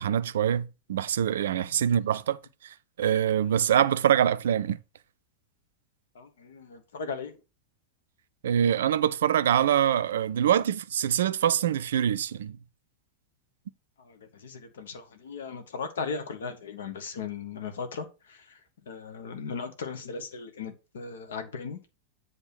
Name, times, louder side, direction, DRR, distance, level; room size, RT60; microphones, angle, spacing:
voice 1, 0.0-2.4 3.0-4.8 8.4-12.6, right 9 dB, 60° right, 0.4 m, -24 dB
voice 2, 6.1-7.3 14.0-18.4 18.9-21.8, left 5 dB, 65° left, 1.3 m, -37 dB
7.9 x 3.8 x 5.9 m
figure-of-eight pair, 90°, 0 cm